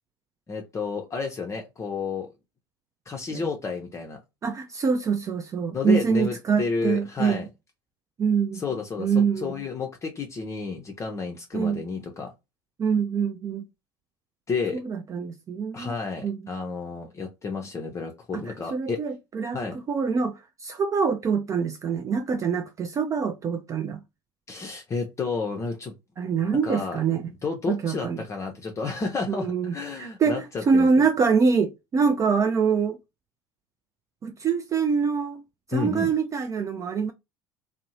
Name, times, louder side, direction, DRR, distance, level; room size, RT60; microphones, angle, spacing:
voice 1, 0.5-2.3 3.1-4.2 5.7-7.5 8.5-12.3 14.5-14.8 15.7-19.0 19.5-19.8 24.5-25.9 26.5-30.9 35.7-36.1, left 4 dB, 25° left, 0.6 m, -31 dB
voice 2, 4.4-7.5 8.2-8.6 9.0-9.5 11.5-11.8 12.8-13.6 14.8-15.9 16.2-16.4 18.3-18.4 18.7-19.6 19.9-24.0 26.2-27.3 27.7-28.2 29.3-33.0 34.2-35.4 35.7-37.1, right 5 dB, 30° right, 0.3 m, -25 dB
2.6 x 2.0 x 2.9 m
hypercardioid pair, 70°, 11 cm